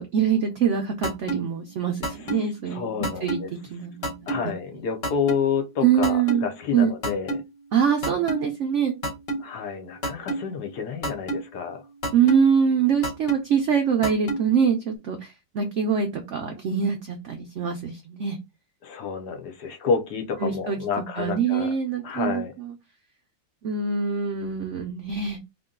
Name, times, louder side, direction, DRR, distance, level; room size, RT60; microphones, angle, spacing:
voice 1, 0.0-3.4 3.7-4.4 5.8-7.2 7.7-8.9 12.1-18.4 20.4-22.7 23.6-25.4, right 7 dB, 85° right, 0.6 m, -24 dB
sound 1, 1.0-1.4 2.0-2.4 3.0-3.4 4.0-4.4 5.0-5.4 6.0-6.4 7.0-7.4 8.0-8.4 9.0-9.4 10.0-10.4 11.0-11.4 12.0-12.4 13.0-13.4 14.0-14.4, right 1 dB, 40° left, 1.1 m, -26 dB
voice 2, 2.7-3.5 4.3-7.4 9.4-11.8 18.8-21.7 22.0-22.5, left 6 dB, 70° left, 1.2 m, -29 dB
3.7 x 2.2 x 3.6 m
omnidirectional pair, 1.9 m